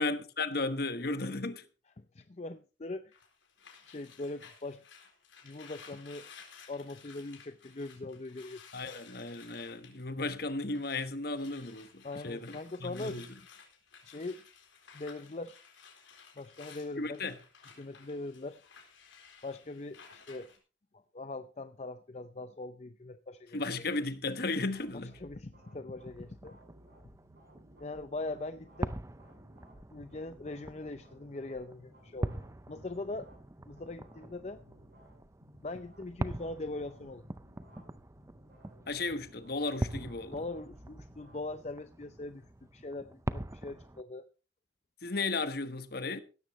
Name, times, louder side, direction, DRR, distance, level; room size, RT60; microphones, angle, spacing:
voice 1, 0.0-1.6 8.7-13.3 17.0-17.4 23.5-25.2 38.9-40.4 45.0-46.2, left 3 dB, 55° left, 1.2 m, -35 dB
voice 2, 2.0-3.2 3.9-4.8 5.4-6.3 6.7-9.0 12.0-13.2 14.0-14.4 14.9-15.6 16.4-17.2 17.8-18.6 19.4-20.5 20.9-23.6 25.2-26.6 27.8-28.9 29.9-32.4 32.7-33.3 33.7-34.6 35.6-37.2 40.3-44.3, left 2 dB, 35° left, 0.5 m, -41 dB
sound 1, 3.1-11.1 11.3-20.6, left 6 dB, 80° left, 4.2 m, -55 dB
sound 2, 24.7-41.7, equal, 55° right, 7.7 m, -59 dB
sound 3, 26.0-44.0, right 1 dB, 15° right, 0.5 m, -43 dB
16.5 x 13.5 x 3.1 m
head